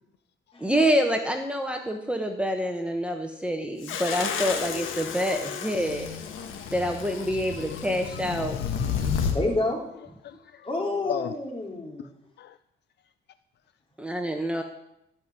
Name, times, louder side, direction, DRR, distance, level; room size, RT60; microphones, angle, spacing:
voice 1, 0.6-6.1 6.7-8.6 14.0-14.6, equal, 5° right, 4 dB, 1.2 m, -27 dB
sound 1, 3.8-9.4, left 7 dB, 85° left, 1.6 m, -31 dB
voice 2, 6.6-7.0 7.3-9.3 10.2-10.7 11.1-11.3 12.4-12.6, left 12 dB, 60° left, 13 dB, 0.4 m, -40 dB
voice 3, 9.3-9.8 10.6-12.1, left 2 dB, 25° left, 0 dB, 3.3 m, -28 dB
14.0 x 5.4 x 8.3 m, 0.81 s
cardioid pair, 90°, 20 cm